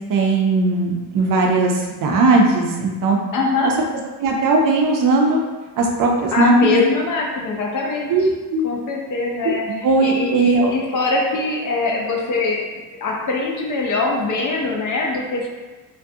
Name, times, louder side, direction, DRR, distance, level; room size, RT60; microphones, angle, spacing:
voice 1, 0.1-3.2 4.2-5.4 5.8-6.8 8.1-8.7 9.8-10.7, right 3 dB, 55° right, 1 dB, 0.5 m, -18 dB
voice 2, 3.3-3.7 6.3-8.3 8.6-12.6 13.0-15.5, left 3 dB, 50° left, -1 dB, 0.6 m, -22 dB
2.4 x 2.2 x 2.6 m, 1.2 s
cardioid pair, 90°, 41 cm